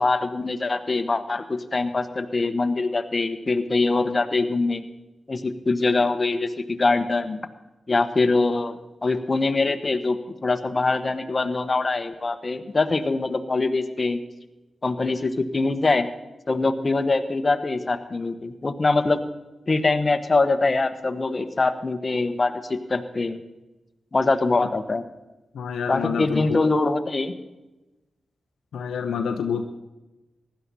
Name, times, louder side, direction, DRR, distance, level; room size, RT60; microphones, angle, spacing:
voice 1, 0.0-4.8 5.3-7.4 7.9-14.2 14.8-16.1 16.5-19.2 19.7-23.4 24.1-25.0 25.9-27.3, left 3 dB, 45° left, 8 dB, 1.3 m, -23 dB
voice 2, 25.5-26.6 28.7-29.6, left 6 dB, 85° left, 7 dB, 0.8 m, -27 dB
16.0 x 11.5 x 5.6 m, 1.1 s
supercardioid pair, 40°, 0 cm